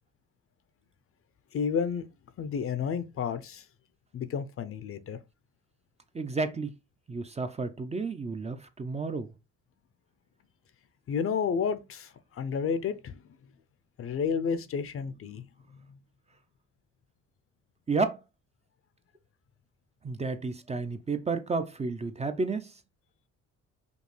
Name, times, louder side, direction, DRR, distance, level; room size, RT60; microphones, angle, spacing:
voice 1, 1.5-2.1 2.4-3.6 4.1-5.2 11.1-13.2 14.0-15.5, left 6 dB, 45° left, 0.5 m, -31 dB
voice 2, 6.1-6.7 7.1-9.3 17.9-18.2 20.0-22.7, right 4 dB, 20° right, 0.5 m, -31 dB
5.2 x 2.4 x 3.2 m
cardioid pair, 90°, 30 cm